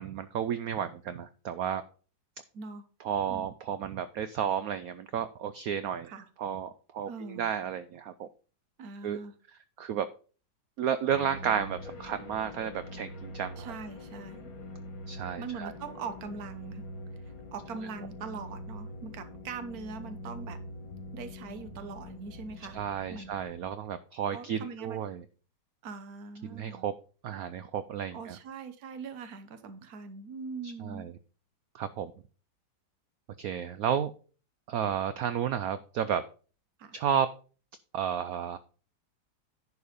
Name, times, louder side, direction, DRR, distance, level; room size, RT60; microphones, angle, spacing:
voice 1, 0.0-1.8 3.0-6.1 6.4-8.3 9.0-9.2 9.8-10.1 10.8-13.7 15.1-15.7 22.7-25.2 26.4-26.9 27.2-28.4 30.6-31.1 31.7-32.1 33.4-34.1 34.7-36.2 36.9-37.3 37.9-38.6, right 8 dB, 80° right, 13 dB, 0.8 m, -32 dB
voice 2, 2.5-2.9 3.2-3.5 6.0-6.3 7.1-7.5 8.8-9.3 13.6-14.5 15.4-16.9 17.5-20.6 21.1-22.8 23.1-23.3 24.3-25.0 25.8-26.9 28.1-31.1 36.8-36.9, right 5 dB, 55° right, 10 dB, 1.4 m, -41 dB
sound 1, 11.1-23.7, left 1 dB, 75° left, 2.3 m, -44 dB
10.5 x 4.7 x 5.1 m, 0.38 s
omnidirectional pair, 2.1 m